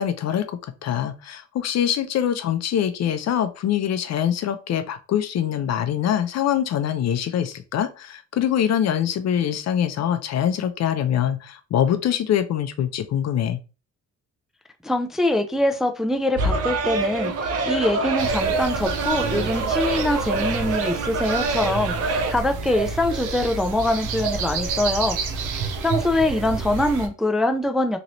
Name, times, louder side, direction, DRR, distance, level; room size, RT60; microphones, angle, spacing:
voice 1, 0.0-13.6, left 9 dB, 60° left, 0.5 m, -24 dB
voice 2, 14.8-25.2 25.5-28.0, left 1 dB, ahead, 0.4 m, -24 dB
sound 1, 16.4-22.3, right 3 dB, 55° right, 0.7 m, -25 dB
sound 2, 18.2-27.1, right 5 dB, 90° right, 0.6 m, -29 dB
3.0 x 2.5 x 3.0 m
cardioid pair, 90°, 30 cm